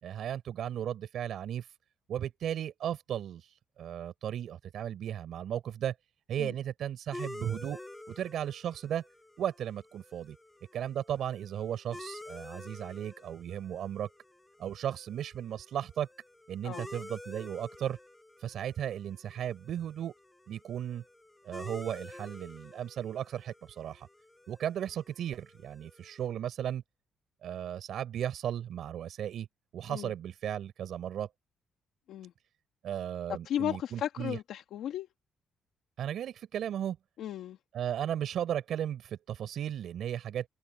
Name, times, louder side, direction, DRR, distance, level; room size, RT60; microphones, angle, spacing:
voice 1, 0.0-1.7 2.1-5.9 6.3-7.8 8.1-9.0 9.4-10.4 10.7-14.1 14.6-16.1 16.5-18.0 18.4-20.1 20.5-21.0 21.4-24.1 24.5-26.8 27.4-29.5 29.7-31.3 32.8-34.4 36.0-37.0 37.7-40.5, right 10 dB, 70° right, 4.2 m, -35 dB
sound 1, 7.1-26.3, left 1 dB, 10° left, 7.6 m, -50 dB
voice 2, 33.4-35.1 37.2-37.6, left 10 dB, 80° left, 1.6 m, -35 dB
cardioid pair, 90°, 0 cm